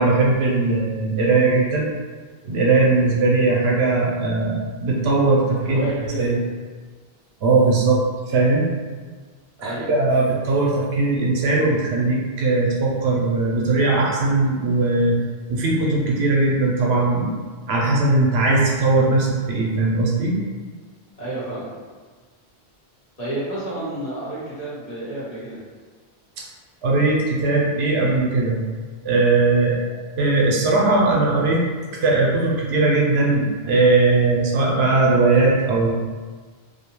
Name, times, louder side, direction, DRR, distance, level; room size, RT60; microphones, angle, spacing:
voice 1, 0.0-1.9 2.4-5.8 6.2-6.4 7.4-8.0 8.3-8.7 9.6-15.2 15.5-17.3 17.7-20.4 26.4-26.5 26.8-28.6 29.0-31.6 32.0-35.9, right 3 dB, 80° right, -3 dB, 0.8 m, -19 dB
voice 2, 5.6-6.4 9.6-9.9 21.2-21.7 23.2-25.6, right 1 dB, 40° left, -10 dB, 1.0 m, -30 dB
2.6 x 2.1 x 2.9 m, 1.5 s
omnidirectional pair, 1.1 m